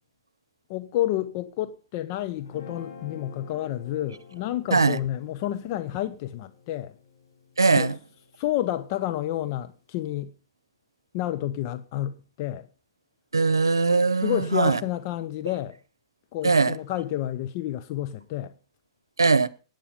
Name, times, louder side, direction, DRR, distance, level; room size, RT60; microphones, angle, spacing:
voice 1, 0.7-7.0 7.8-7.9 8.4-10.3 11.1-12.7 14.1-15.8 16.3-18.5, left 13 dB, 45° left, 0.8 m, -30 dB
Guitar, 2.4-8.7, left 5 dB, 70° left, 5.3 m, -48 dB
voice 2, 7.6-7.9 13.3-14.8 16.4-16.7 19.2-19.5, right 4 dB, 80° right, 0.8 m, -20 dB
18.0 x 9.2 x 5.1 m
figure-of-eight pair, 110°, 2 cm